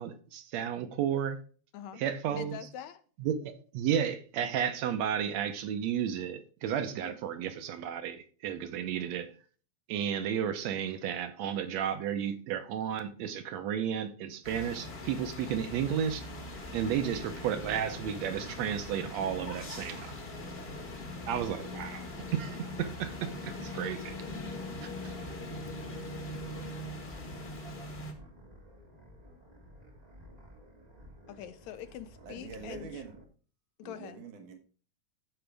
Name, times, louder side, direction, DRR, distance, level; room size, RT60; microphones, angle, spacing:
voice 1, 0.0-1.4 1.9-2.6 3.2-9.3 9.9-16.2 16.7-20.2 21.3-22.1 22.3-24.2, right 9 dB, 70° right, 1.8 m, -33 dB
voice 2, 2.4-3.0 7.1-7.2 16.9-17.1 31.3-33.0 33.8-34.2, left 10 dB, 75° left, 1.8 m, -44 dB
sound 1, 14.4-28.1, left 2 dB, 35° left, 0.9 m, -41 dB
sound 2, 16.5-33.2, equal, 35° right, 0.6 m, -54 dB
voice 3, 32.2-33.2 33.8-34.5, right 5 dB, 90° right, 3.1 m, -45 dB
15.0 x 5.0 x 3.4 m
omnidirectional pair, 3.5 m